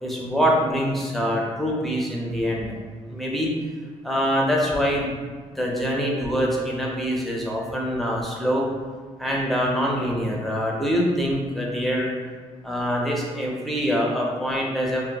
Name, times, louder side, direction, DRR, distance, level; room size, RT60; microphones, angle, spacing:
voice 1, 0.0-2.8 3.1-3.5 4.0-5.2 5.5-8.7 9.2-12.1 12.6-15.0, equal, ahead, -3 dB, 0.5 m, -24 dB
2.6 x 2.1 x 2.8 m, 1.5 s
cardioid pair, 110°, 12 cm